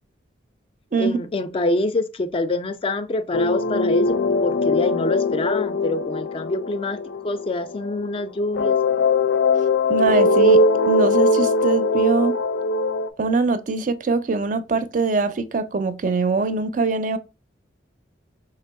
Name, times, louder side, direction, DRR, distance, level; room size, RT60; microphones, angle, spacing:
voice 1, 1.0-7.0 7.2-8.8, left 2 dB, 30° left, 0.3 m, -26 dB
sound 1, 3.3-8.2 8.5-13.1, left 2 dB, 90° left, 0.5 m, -20 dB
voice 2, 9.9-10.6 10.9-12.3 13.2-17.2, right 4 dB, 45° right, 0.4 m, -22 dB
3.3 x 2.9 x 4.6 m
head